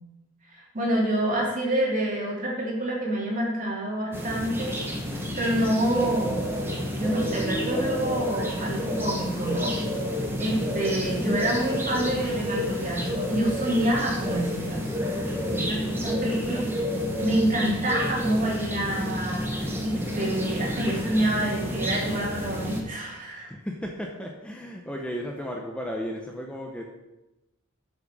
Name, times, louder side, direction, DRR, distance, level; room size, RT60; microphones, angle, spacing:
voice 1, 0.5-4.8 5.4-6.5 6.9-9.7 10.4-15.1 15.5-16.7 17.2-23.5, right 1 dB, 40° right, -4 dB, 2.9 m, -27 dB
sound 1, 4.1-22.8, left 1 dB, 10° right, 1.4 m, -30 dB
voice 2, 15.1-16.9 23.5-26.8, equal, 5° left, 1 dB, 0.7 m, -35 dB
7.5 x 7.4 x 6.2 m, 1.0 s
head